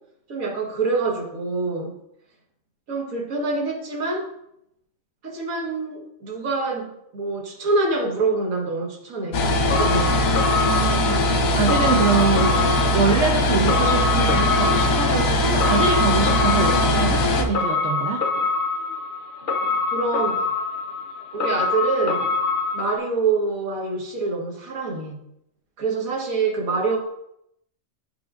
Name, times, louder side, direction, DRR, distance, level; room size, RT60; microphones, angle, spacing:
voice 1, 0.3-1.9 2.9-4.3 5.2-9.4 9.8-10.4 19.9-20.5 21.3-22.3 22.7-25.2 25.8-27.0, right 3 dB, 85° right, -1 dB, 1.7 m, -25 dB
sound 1, 9.3-17.4, left 1 dB, 85° left, 1.3 m, -20 dB
sound 2, 9.7-23.0, left 4 dB, 50° left, 0.7 m, -26 dB
voice 2, 10.6-11.2 11.5-18.2, right 5 dB, 65° right, 1 dB, 0.9 m, -24 dB
11.5 x 3.9 x 2.4 m, 0.77 s
omnidirectional pair, 1.4 m